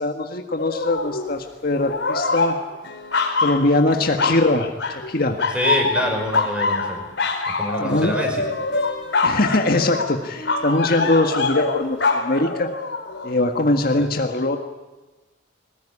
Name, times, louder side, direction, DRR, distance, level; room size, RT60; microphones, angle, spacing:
voice 1, 0.0-2.6 3.4-4.7 5.1-5.4 7.8-8.3 9.2-12.7 13.2-14.6, left 2 dB, 50° left, 4 dB, 1.6 m, -21 dB
sound 1, 0.6-1.4 1.7-4.5 4.8-5.1 5.4-13.3 13.8-14.0, left 3 dB, 65° left, 4.1 m, -25 dB
voice 2, 5.5-7.0 7.6-8.4 14.0-14.1, equal, 5° right, 2 dB, 5.6 m, -25 dB
22.0 x 19.5 x 10.0 m, 1.2 s
head